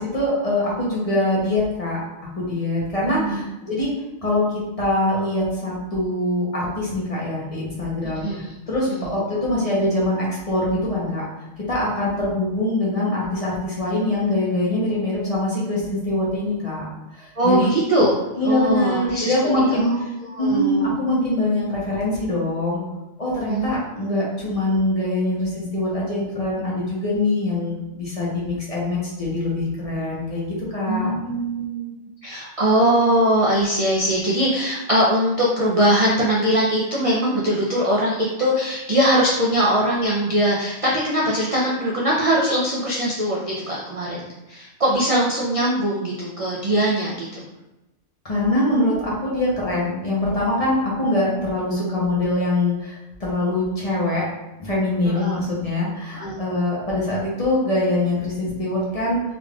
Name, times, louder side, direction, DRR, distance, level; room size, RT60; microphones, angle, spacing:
voice 1, 0.0-2.0 2.4-3.9 4.2-4.4 4.8-11.2 11.7-16.8 17.1-17.7 18.4-20.1 20.4-22.8 23.2-31.1 48.2-54.2 54.6-59.2, left 1 dB, 30° left, -6 dB, 0.9 m, -23 dB
voice 2, 3.0-3.4 8.2-8.5 8.9-9.1 17.4-18.2 18.4-20.9 23.5-23.8 30.9-31.9 32.2-47.4 55.0-55.4 56.1-56.3, right 1 dB, 45° right, -5 dB, 0.4 m, -21 dB
3.7 x 3.5 x 2.4 m, 0.98 s
omnidirectional pair, 1.3 m